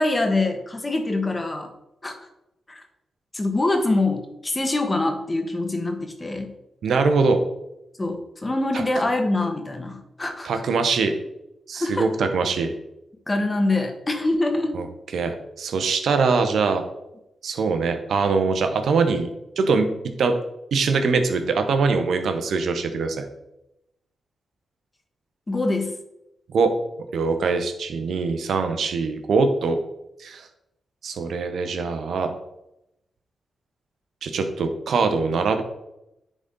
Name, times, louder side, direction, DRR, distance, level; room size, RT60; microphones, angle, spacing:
voice 1, 0.0-1.7 2.0-2.2 2.7-2.8 3.3-6.5 8.0-10.6 11.8-12.1 13.3-14.7 25.5-25.9, left 2 dB, 30° left, 5 dB, 1.5 m, -24 dB
voice 2, 6.8-7.4 10.4-11.1 11.7-12.7 14.7-14.8 15.1-16.8 17.4-19.3 19.6-19.9 20.2-20.4 20.7-23.3 26.5-26.7 27.1-29.8 30.2-30.5 31.0-32.3 34.2-35.6, right 4 dB, 75° right, 7 dB, 0.9 m, -22 dB
9.8 x 4.1 x 3.8 m, 0.86 s
supercardioid pair, 45°, 0 cm